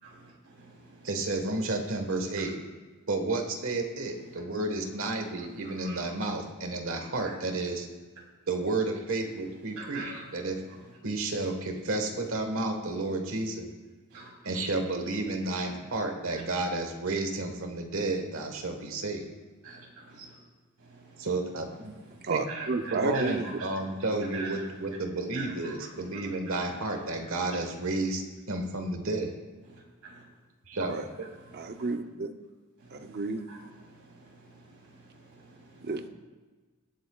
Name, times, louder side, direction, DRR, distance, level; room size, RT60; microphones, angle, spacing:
voice 1, 0.0-2.4 4.1-4.4 4.9-5.0 5.4-6.3 7.3-7.4 9.2-11.0 12.1-12.3 14.1-14.6 15.1-15.8 16.3-16.4 19.6-20.4 20.8-27.8 29.6-30.3 30.7-32.0 32.8-36.1, right 3 dB, 90° right, -2 dB, 3.2 m, -47 dB
voice 2, 1.0-2.6 3.1-7.9 8.5-10.0 10.3-10.6 11.0-13.7 14.4-19.3 21.2-22.0 22.3-22.4 22.7-29.3 30.7-31.0, right 2 dB, 65° right, 4 dB, 1.4 m, -31 dB
voice 3, 22.2-23.4 24.1-24.2 30.8-31.0 31.5-32.3 32.9-33.4 35.8-36.1, right 3 dB, 45° right, 7 dB, 0.7 m, -31 dB
20.0 x 8.3 x 2.4 m, 1.3 s
head